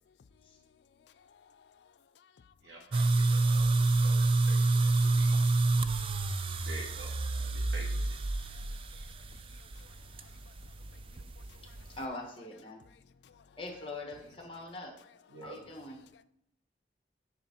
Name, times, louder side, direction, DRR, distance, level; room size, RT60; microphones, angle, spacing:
voice 1, 1.0-2.5 5.0-5.1 5.9-6.6 7.6-7.7 8.3-12.0 12.8-13.6 16.1-16.2, left 6 dB, 75° left, 0.3 m, -62 dB
voice 2, 2.6-5.4 6.6-7.1 7.4-8.2 14.1-14.5 15.3-15.6, right 1 dB, 85° right, 1.9 m, -48 dB
sound 1, 2.9-12.0, right 3 dB, 30° right, 0.3 m, -28 dB
voice 3, 12.0-12.8 13.6-14.9 15.4-16.0, left 2 dB, 30° left, 1.2 m, -42 dB
9.9 x 3.3 x 4.2 m
head